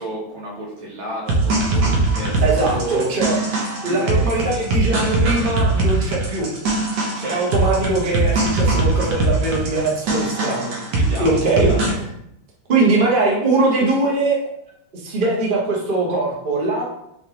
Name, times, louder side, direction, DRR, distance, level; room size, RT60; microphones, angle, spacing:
voice 1, 0.0-3.1 3.8-4.9 7.2-7.6 10.9-12.0, right 1 dB, 80° right, -5 dB, 2.1 m, -31 dB
sound 1, 1.3-11.9, right 2 dB, 65° right, 1.4 m, -21 dB
voice 2, 2.4-3.4 3.8-6.5 7.2-10.7 11.2-11.7 12.7-14.4 14.9-16.8, right 3 dB, 40° right, -3 dB, 0.8 m, -21 dB
4.2 x 3.2 x 3.0 m, 0.78 s
omnidirectional pair, 2.2 m